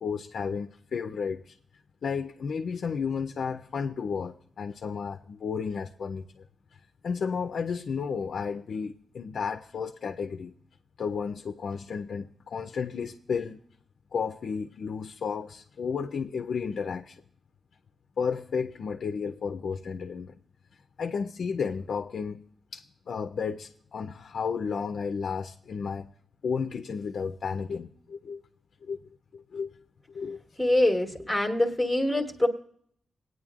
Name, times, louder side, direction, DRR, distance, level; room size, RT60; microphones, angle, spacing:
voice 1, 0.0-1.6 2.0-6.5 7.0-10.5 11.0-13.6 14.1-17.2 18.2-20.4 21.0-22.4 22.7-26.1 26.4-28.4 28.8-29.0 29.3-29.7 30.1-30.4, left 6 dB, 65° left, 0.4 m, -32 dB
voice 2, 30.6-32.5, left 1 dB, ahead, 1.2 m, -24 dB
21.0 x 9.3 x 2.4 m
wide cardioid pair, 160°, 0 cm